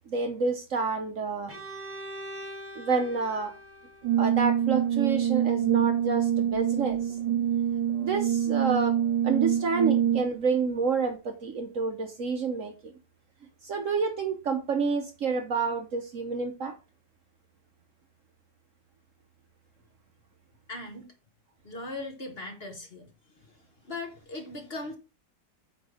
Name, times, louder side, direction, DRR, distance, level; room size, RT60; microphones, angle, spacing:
voice 1, 0.1-1.5 2.8-3.5 4.2-7.2 8.0-9.0 9.2-12.9 13.6-16.7, right 4 dB, 55° right, 1.0 m, -29 dB
Bowed string instrument, 1.5-5.3, right 1 dB, 15° right, 0.6 m, -43 dB
Brass instrument, 4.0-10.4, right 10 dB, 80° right, 1.3 m, -25 dB
voice 2, 20.7-21.1 21.6-23.1 23.3-23.5 23.8-24.9, left 2 dB, 40° left, 1.2 m, -38 dB
8.5 x 3.5 x 4.8 m
omnidirectional pair, 1.9 m